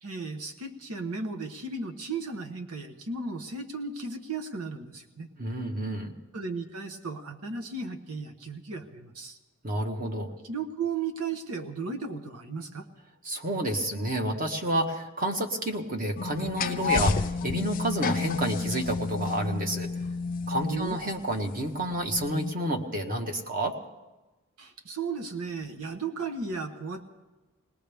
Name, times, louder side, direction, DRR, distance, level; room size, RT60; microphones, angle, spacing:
voice 1, 0.0-5.3 6.3-9.4 10.4-12.9 20.6-21.0 24.6-27.0, right 4 dB, 85° right, 6 dB, 1.1 m, -35 dB
voice 2, 5.4-6.1 9.6-10.3 13.2-19.9 20.5-23.8, right 1 dB, 40° right, 4 dB, 1.3 m, -30 dB
sound 1, 16.2-21.4 22.1-22.5, left 4 dB, 40° left, 0.4 m, -30 dB
20.0 x 19.5 x 3.5 m, 1.1 s
head